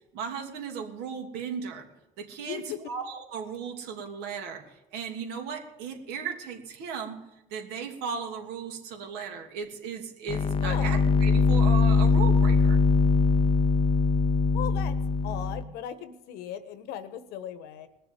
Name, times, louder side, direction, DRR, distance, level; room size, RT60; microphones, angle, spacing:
voice 1, 0.1-1.9 2.2-4.6 4.9-7.2 7.5-12.8, right 6 dB, 75° right, 3 dB, 2.9 m, -36 dB
voice 2, 2.4-2.8 10.6-10.9 14.5-15.0 15.2-17.9, left 10 dB, 75° left, 11 dB, 1.3 m, -37 dB
sound 1, 10.3-15.6, left 4 dB, 30° left, 0.6 m, -22 dB
20.0 x 6.9 x 9.0 m, 0.91 s
cardioid pair, 115°, 17 cm